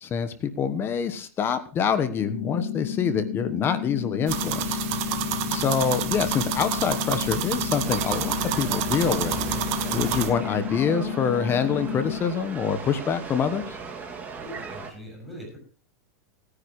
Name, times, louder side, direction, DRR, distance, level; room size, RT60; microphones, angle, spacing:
voice 1, 0.0-4.8 5.1-5.2 5.5-9.4 9.9-13.8, left 7 dB, 30° left, 11 dB, 1.2 m, -26 dB
sound 1, 2.2-12.2, left 10 dB, 70° left, 1.8 m, -32 dB
sound 2, 4.3-10.3, right 10 dB, 55° right, 1.6 m, -29 dB
voice 2, 5.1-5.6 14.4-15.6, equal, ahead, -2 dB, 7.3 m, -42 dB
sound 3, 7.8-14.9, right 5 dB, 20° right, 2.4 m, -38 dB
18.5 x 9.9 x 3.1 m, 0.40 s
hypercardioid pair, 125°, 8 cm